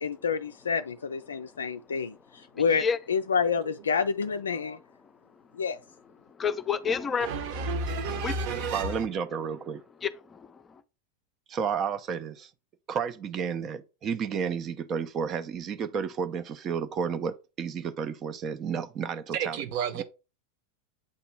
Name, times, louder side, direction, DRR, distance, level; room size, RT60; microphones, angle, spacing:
voice 1, 0.0-4.8 5.6-5.8, left 6 dB, 70° left, 0.3 m, -28 dB
voice 2, 6.4-7.3 8.1-8.6 10.0-10.6, left 6 dB, 20° left, 0.6 m, -29 dB
voice 3, 7.2-9.0 19.3-20.0, right 4 dB, 45° right, 1.0 m, -31 dB
voice 4, 8.7-9.8 11.5-12.5 12.9-19.6 19.9-20.0, right 6 dB, 30° right, 0.5 m, -32 dB
8.4 x 2.9 x 4.6 m
figure-of-eight pair, 90°, 0 cm